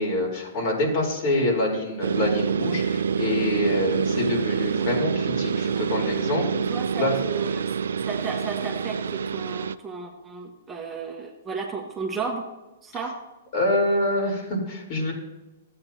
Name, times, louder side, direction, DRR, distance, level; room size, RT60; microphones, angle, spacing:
voice 1, 0.0-6.4 6.9-7.2 13.5-15.1, left 1 dB, 50° left, -2 dB, 3.6 m, -26 dB
sound 1, 2.0-9.8, right 6 dB, 75° right, 0.3 m, -26 dB
voice 2, 6.7-7.7 8.1-12.4 12.8-13.2, right 5 dB, 15° right, 0 dB, 1.3 m, -33 dB
14.0 x 8.6 x 2.8 m, 1.0 s
hypercardioid pair, 125°, 0 cm